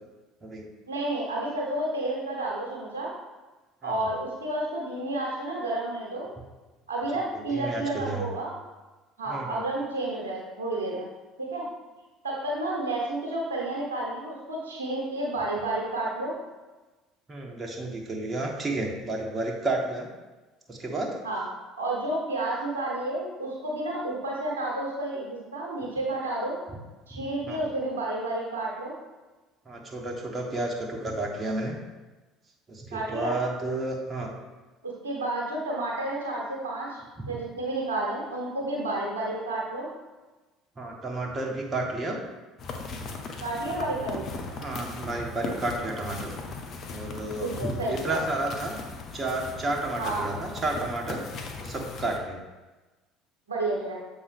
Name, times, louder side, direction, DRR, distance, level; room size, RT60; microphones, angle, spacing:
voice 1, 0.9-3.1 3.8-6.3 6.9-8.5 9.2-11.1 11.4-11.6 12.2-16.4 21.2-21.4 21.8-26.6 27.1-28.9 32.9-33.3 34.8-37.0 37.3-39.9 43.4-44.2 47.4-48.2 50.0-50.2 53.5-54.0, right 2 dB, 85° right, -3 dB, 1.3 m, -31 dB
voice 2, 7.3-8.3 9.3-9.6 17.3-20.1 20.7-21.2 27.1-27.6 29.6-31.8 32.7-34.3 37.2-37.4 40.8-42.2 44.5-46.3 46.9-48.7 49.1-51.2 51.6-52.4, right 2 dB, 30° right, 0 dB, 1.3 m, -31 dB
sound 1, 42.6-52.2, left 3 dB, 50° left, 0.8 m, -38 dB
7.1 x 4.6 x 3.6 m, 1.2 s
figure-of-eight pair, 60°, 0 cm